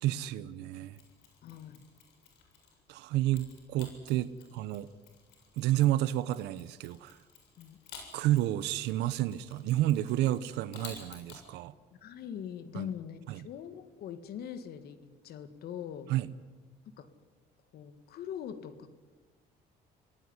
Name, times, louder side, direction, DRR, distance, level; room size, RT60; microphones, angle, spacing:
voice 1, 0.0-1.0 2.9-4.9 5.6-7.2 8.1-11.7 12.7-12.9 13.3-13.4 16.1-16.3, right 14 dB, 90° right, 15 dB, 0.9 m, -30 dB
Mechanisms, 0.9-2.8 3.3-11.4, left 6 dB, 90° left, 7.4 m, -53 dB
voice 2, 1.4-1.9 7.6-7.8 11.9-16.1 17.0-17.1 17.7-18.9, left 9 dB, 70° left, 11 dB, 2.1 m, -42 dB
27.5 x 18.5 x 9.9 m, 1.3 s
cardioid pair, 110°, 17 cm